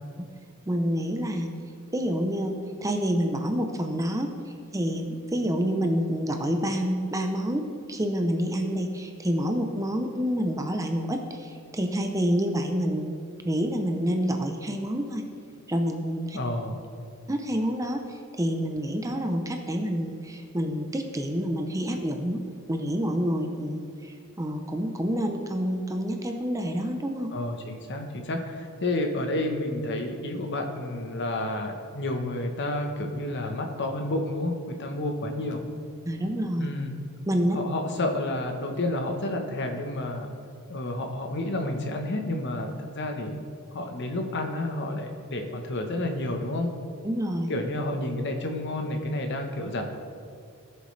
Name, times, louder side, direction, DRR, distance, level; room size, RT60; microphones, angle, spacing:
voice 1, 0.7-1.5 1.9-4.3 4.7-7.6 7.9-15.2 15.7-16.4 17.3-22.4 22.7-27.3 36.1-36.7 37.3-37.6 47.0-47.5, equal, 15° right, 4 dB, 0.6 m, -28 dB
voice 2, 16.4-16.8 27.3-35.6 36.6-37.0 37.5-40.3 40.7-43.4 43.7-46.7 47.5-49.9, left 1 dB, 50° left, 4 dB, 1.0 m, -30 dB
17.0 x 6.8 x 3.3 m, 2.3 s
head